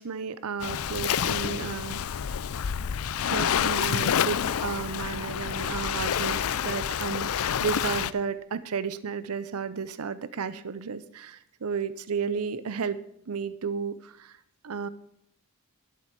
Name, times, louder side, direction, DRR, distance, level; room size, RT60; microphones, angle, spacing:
voice 1, 0.0-2.0 3.3-13.0 13.3-14.4 14.6-14.9, right 6 dB, 75° right, 15 dB, 0.6 m, -33 dB
Waves surf, 0.6-8.1, left 8 dB, 70° left, 0.4 m, -28 dB
11.5 x 7.7 x 6.7 m, 0.71 s
head